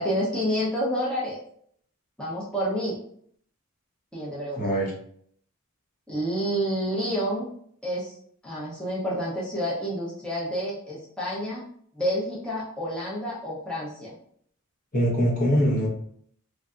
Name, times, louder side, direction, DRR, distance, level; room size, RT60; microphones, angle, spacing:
voice 1, 0.0-1.4 2.2-3.0 4.1-4.7 6.1-7.5 7.8-8.2 8.4-11.6 11.9-14.2, equal, 5° left, -7 dB, 0.7 m, -29 dB
voice 2, 4.6-4.9 14.9-15.9, equal, 40° left, -2 dB, 0.9 m, -22 dB
3.3 x 2.6 x 2.4 m, 0.64 s
head